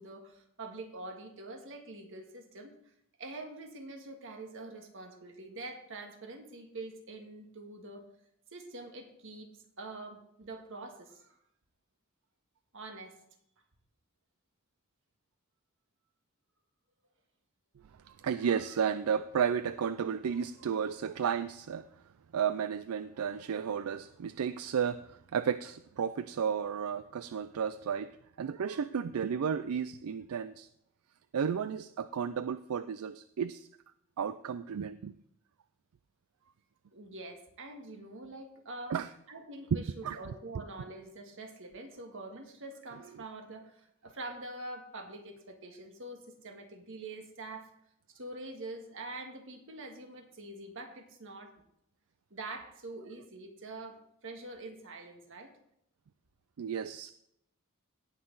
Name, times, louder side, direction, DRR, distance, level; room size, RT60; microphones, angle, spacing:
voice 1, 0.0-2.9 3.2-8.1 8.5-11.4 12.7-13.2 36.9-39.0 39.3-47.7 48.1-51.6 52.3-55.5, right 2 dB, 65° right, 4 dB, 1.7 m, -45 dB
voice 2, 18.0-21.9 22.3-30.7 31.3-33.7 34.2-35.2 38.9-39.1 39.7-40.6 43.0-43.2 56.6-57.1, right 7 dB, 85° right, 14 dB, 0.4 m, -33 dB
17.5 x 6.0 x 3.9 m, 0.76 s
head